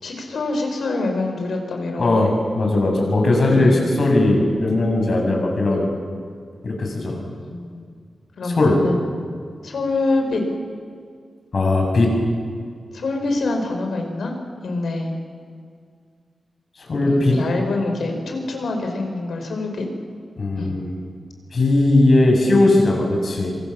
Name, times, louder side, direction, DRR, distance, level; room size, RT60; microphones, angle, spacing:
voice 1, 0.0-2.3 3.5-4.0 7.4-7.8 8.4-9.0 9.6-10.4 12.9-14.4 14.6-15.1 17.0-19.9 20.6-20.7, left 2 dB, 80° left, 3 dB, 5.5 m, -25 dB
voice 2, 2.0-2.3 2.6-5.9 6.6-7.2 8.6-8.8 11.5-12.1 16.8-17.4 20.4-20.9 21.5-23.6, left 2 dB, 50° left, 1 dB, 7.4 m, -18 dB
26.0 x 26.0 x 7.4 m, 2.1 s
wide cardioid pair, 145°, 0 cm